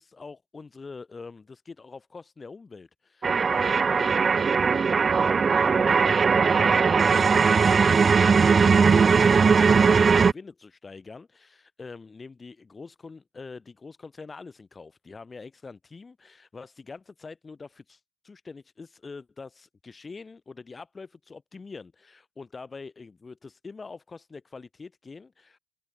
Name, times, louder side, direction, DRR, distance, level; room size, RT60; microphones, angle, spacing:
voice 1, 0.0-4.2 5.0-25.6, left 4 dB, 25° left, 2.8 m, -44 dB
sound 1, 3.2-10.3, right 5 dB, 30° right, 0.3 m, -19 dB
supercardioid pair, 75°, 0 cm